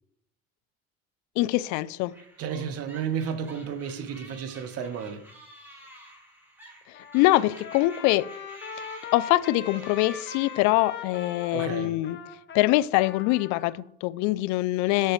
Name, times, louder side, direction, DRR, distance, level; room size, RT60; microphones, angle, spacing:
voice 1, 1.4-2.1 7.0-8.3 9.1-12.2 12.5-15.1, left 17 dB, 75° left, 0.4 m, -24 dB
sound 1, 2.1-11.2, equal, 5° right, 3.2 m, -50 dB
voice 2, 2.4-5.2 11.5-11.9, right 7 dB, 55° right, 1.1 m, -32 dB
Trumpet, 6.9-13.8, left 6 dB, 40° left, 1.6 m, -41 dB
9.7 x 8.1 x 3.2 m
cardioid pair, 120°, 29 cm